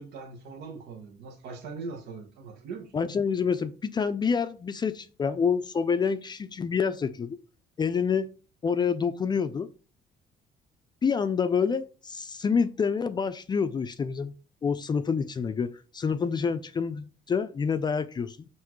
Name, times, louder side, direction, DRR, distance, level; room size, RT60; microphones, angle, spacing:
voice 1, 0.0-2.9, right 4 dB, 85° right, 1.0 m, -41 dB
voice 2, 2.9-7.4 7.8-8.3 8.6-9.7 11.0-14.3 14.6-18.5, left 6 dB, 25° left, 0.4 m, -27 dB
5.7 x 2.6 x 3.0 m
cardioid pair, 110°, 17 cm